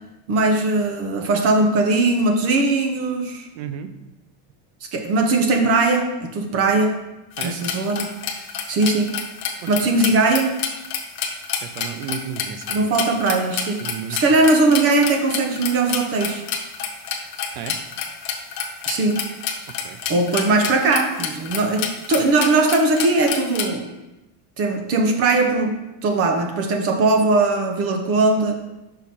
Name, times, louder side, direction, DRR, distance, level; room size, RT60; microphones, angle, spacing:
voice 1, 0.3-3.5 4.9-7.0 7.4-8.1 8.7-9.1 9.7-10.5 12.7-13.8 14.2-16.4 18.9-19.2 20.1-23.9 24.6-25.7 26.0-28.6, right 3 dB, 30° right, 4 dB, 0.7 m, -19 dB
voice 2, 3.5-3.9 7.4-7.6 9.6-9.9 11.6-13.1 13.8-14.2 17.5-17.8 19.8-20.0, right 8 dB, 85° right, 10 dB, 0.8 m, -33 dB
sound 1, 7.4-23.7, left 7 dB, 30° left, 0.4 m, -28 dB
5.7 x 4.8 x 4.2 m, 0.97 s
cardioid pair, 175°, 49 cm